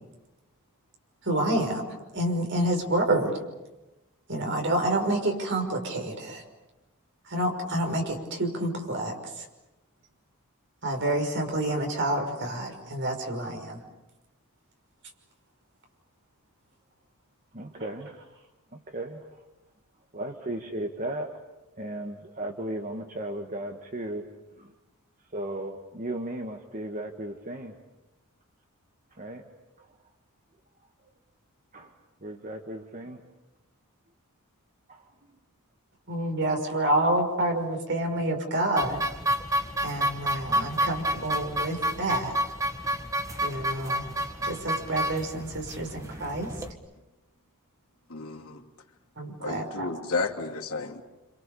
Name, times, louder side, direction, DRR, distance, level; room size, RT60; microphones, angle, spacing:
voice 1, 1.2-1.8 2.1-3.3 4.3-6.4 7.3-9.4 10.8-13.8 36.1-39.0 39.8-42.3 43.4-44.1 44.4-46.5 49.2-49.9, right 1 dB, 55° right, 5.7 m, -28 dB
voice 2, 17.5-18.1 18.9-19.3 20.1-21.3 21.8-24.3 24.6-24.7 25.3-27.8 29.2-29.4 31.7-31.9 32.2-33.2 34.9-35.0, right 1 dB, 35° right, 1.6 m, -35 dB
sound 1, 38.8-46.7, equal, 15° right, 1.7 m, -30 dB
voice 3, 48.1-48.6 49.4-51.0, left 3 dB, 75° left, 2.9 m, -32 dB
29.0 x 27.0 x 7.0 m
head